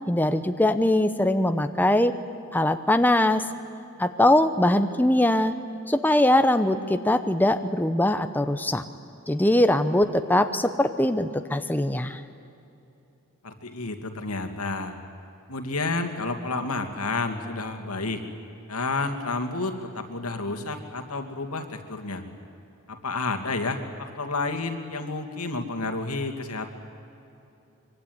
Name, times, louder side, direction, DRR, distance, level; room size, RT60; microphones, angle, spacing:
voice 1, 0.1-2.1 2.5-3.4 4.0-5.5 5.9-8.8 9.3-12.2, left 1 dB, 10° left, 9 dB, 0.9 m, -21 dB
voice 2, 13.4-15.0 15.5-18.2 18.7-22.2 22.9-26.7, left 3 dB, 85° left, 5 dB, 2.5 m, -30 dB
25.0 x 23.5 x 9.7 m, 2.9 s
head